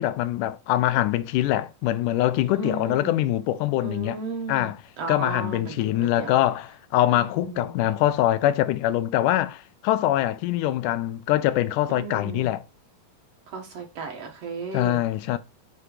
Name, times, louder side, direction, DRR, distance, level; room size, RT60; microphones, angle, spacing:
voice 1, 0.0-4.2 4.5-4.8 5.1-12.6 14.7-15.4, left 14 dB, 90° left, 2.1 m, -23 dB
voice 2, 2.5-3.2 3.8-4.7 5.0-6.4 7.1-7.8 11.9-12.5 13.5-15.0, right 4 dB, 60° right, 2.0 m, -35 dB
8.0 x 3.0 x 4.9 m
omnidirectional pair, 3.6 m